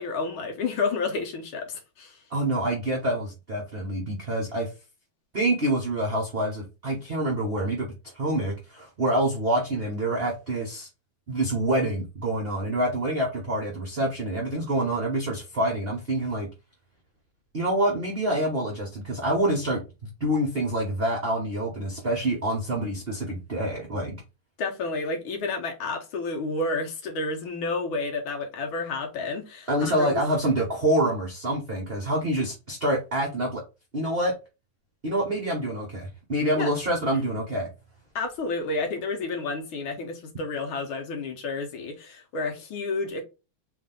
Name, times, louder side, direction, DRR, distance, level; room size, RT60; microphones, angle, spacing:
voice 1, 0.0-2.2 24.6-30.2 36.6-36.7 38.1-43.2, left 3 dB, 70° left, 1.6 m, -30 dB
voice 2, 2.3-4.7 5.3-7.9 8.1-10.9 11.3-16.5 17.5-24.2 29.7-33.6 33.9-34.3 35.0-37.7, right 1 dB, 75° right, 0.5 m, -26 dB
3.8 x 2.4 x 3.7 m
omnidirectional pair, 2.4 m